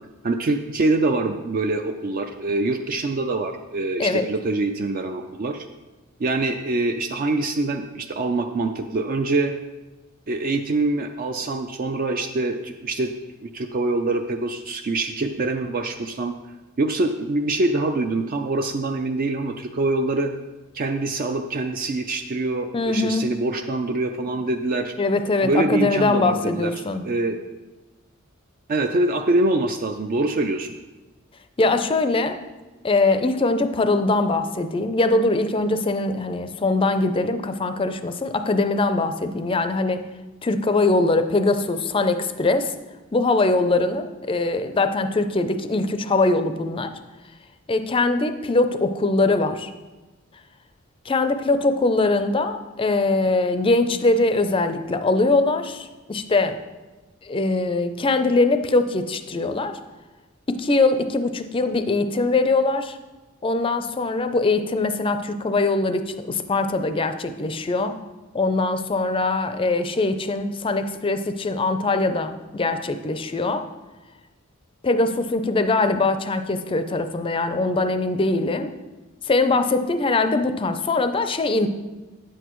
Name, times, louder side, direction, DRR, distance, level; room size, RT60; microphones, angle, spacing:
voice 1, 0.2-5.7 6.2-9.5 10.3-13.1 13.4-16.3 16.8-20.3 20.7-24.9 25.4-26.7 27.0-27.4 28.7-30.8, right 2 dB, 40° right, 5 dB, 0.4 m, -24 dB
voice 2, 22.7-23.3 25.0-27.0 31.6-32.4 32.8-40.0 40.4-42.7 43.1-47.0 47.7-49.7 51.1-56.6 57.2-59.8 60.5-63.0 63.4-68.0 68.3-73.6 74.8-78.7 79.3-81.7, left 3 dB, 25° left, 9 dB, 0.4 m, -22 dB
9.6 x 8.1 x 3.0 m, 1.2 s
head